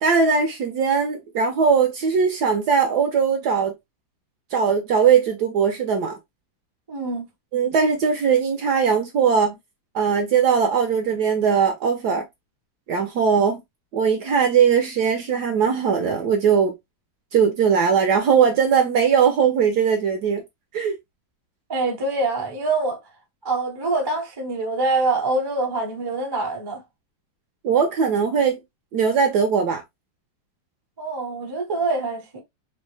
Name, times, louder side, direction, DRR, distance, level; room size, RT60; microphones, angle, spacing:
voice 1, 0.0-3.7 4.5-6.2 7.5-9.5 9.9-12.2 12.9-13.6 13.9-16.7 17.3-20.4 20.7-20.9 27.6-28.6 28.9-29.8, right 6 dB, 70° right, 1.0 m, -20 dB
voice 2, 6.9-7.3 21.7-23.0 23.4-26.8 31.0-32.4, right 2 dB, 30° right, 0.4 m, -25 dB
3.8 x 2.1 x 3.0 m
omnidirectional pair, 2.2 m